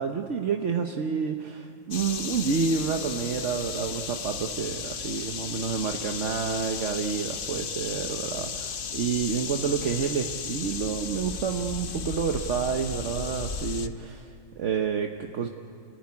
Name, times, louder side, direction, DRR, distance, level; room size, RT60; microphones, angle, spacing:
voice 1, 0.0-15.5, right 6 dB, 65° right, 4 dB, 1.3 m, -29 dB
sound 1, 1.9-13.9, left 6 dB, 50° left, 0.9 m, -35 dB
29.0 x 15.5 x 9.8 m, 2.3 s
omnidirectional pair, 1.4 m